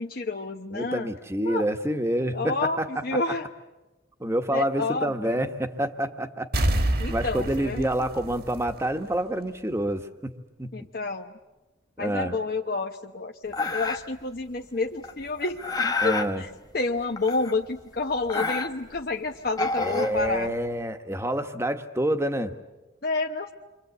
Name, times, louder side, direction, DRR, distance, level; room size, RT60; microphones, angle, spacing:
voice 1, 0.0-1.1 1.4-1.7 2.3-3.5 4.5-5.4 7.0-7.9 10.7-11.3 12.0-15.6 16.0-20.5 23.0-23.5, left 3 dB, 50° left, 3 dB, 1.0 m, -29 dB
voice 2, 0.7-2.9 4.2-10.7 12.0-12.4 16.0-16.4 19.8-22.5, right 1 dB, 15° right, 7 dB, 1.3 m, -28 dB
sound 1, 6.5-9.1 9.5-9.6, right 1 dB, 50° right, 1.6 m, -27 dB
sound 2, 13.5-14.2 15.0-16.3 17.2-17.8 18.1-19.0 19.5-20.7, left 3 dB, 20° left, 1.3 m, -29 dB
29.5 x 25.0 x 8.2 m, 1.1 s
head